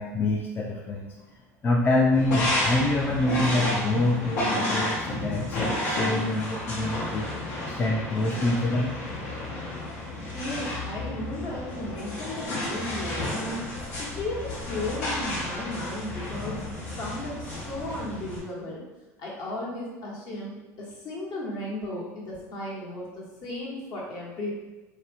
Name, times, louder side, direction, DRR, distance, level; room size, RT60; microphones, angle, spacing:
voice 1, 0.0-7.3 7.7-8.9, left 2 dB, 25° left, -1 dB, 0.4 m, -26 dB
sound 1, 2.1-18.4, left 1 dB, 80° left, 0.9 m, -31 dB
voice 2, 10.3-18.8 19.2-24.5, left 1 dB, 55° left, -4 dB, 1.0 m, -35 dB
2.7 x 2.0 x 3.3 m, 1.1 s
hypercardioid pair, 75°, 8 cm